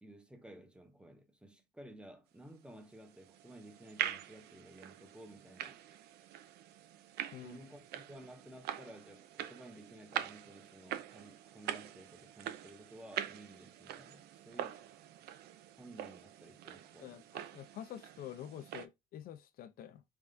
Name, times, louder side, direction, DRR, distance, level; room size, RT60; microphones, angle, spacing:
voice 1, 0.0-5.8 7.3-14.9 15.8-17.2, right 1 dB, 5° right, 0.7 m, -54 dB
sound 1, 2.8-18.9, right 11 dB, 75° right, 0.4 m, -44 dB
voice 2, 7.3-7.6 17.0-20.0, left 11 dB, 60° left, 0.4 m, -48 dB
3.4 x 3.2 x 2.5 m
cardioid pair, 110°, 17 cm